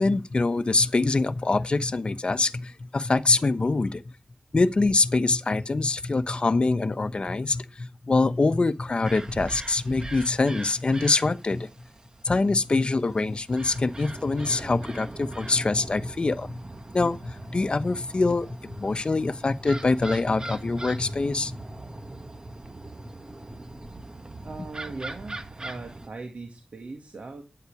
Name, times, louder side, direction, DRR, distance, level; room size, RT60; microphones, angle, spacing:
voice 1, 0.0-4.0 4.5-11.7 12.2-16.6 16.9-21.6, left 3 dB, 50° left, 1.0 m, -24 dB
sound 1, 9.0-26.1, right 2 dB, 35° right, 1.4 m, -40 dB
voice 2, 24.4-27.4, right 3 dB, 85° right, 2.0 m, -39 dB
11.5 x 9.7 x 4.9 m
wide cardioid pair, 95°, 2 cm